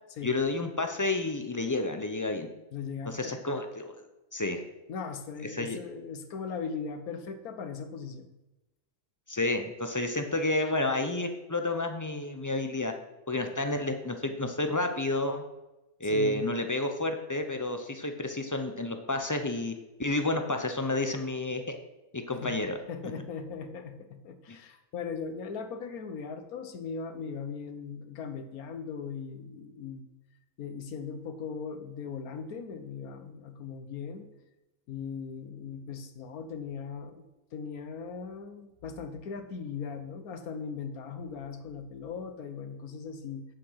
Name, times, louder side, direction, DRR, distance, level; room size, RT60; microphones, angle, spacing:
voice 1, 0.2-2.5 3.1-3.9 4.3-4.6 5.5-5.8 9.3-12.9 13.3-15.4 16.0-19.7 20.0-21.8 22.1-22.8, left 2 dB, 30° left, 6 dB, 0.3 m, -30 dB
voice 2, 2.7-3.4 4.9-8.3 13.5-13.6 16.0-16.5 22.3-22.6 22.9-30.1 30.6-34.3 34.9-37.2 37.5-43.4, left 5 dB, 70° left, 8 dB, 1.4 m, -39 dB
8.9 x 7.5 x 5.7 m, 1.0 s
omnidirectional pair, 1.7 m